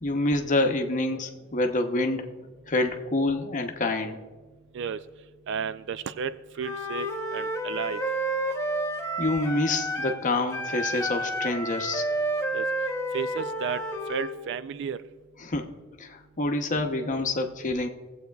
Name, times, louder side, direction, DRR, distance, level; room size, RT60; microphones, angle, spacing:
voice 1, 0.0-2.4 2.7-4.2 9.2-12.0 15.4-15.7 16.0-17.9, left 2 dB, 40° left, 5 dB, 0.8 m, -27 dB
voice 2, 5.5-7.1 7.3-8.0 12.5-12.7 13.1-13.8 14.1-15.0, right 7 dB, 60° right, 13 dB, 0.4 m, -32 dB
Wind instrument woodwind instrument, 6.6-10.2 10.5-14.4, right 1 dB, 15° left, 0.9 m, -30 dB
19.5 x 7.8 x 2.3 m, 1.3 s
head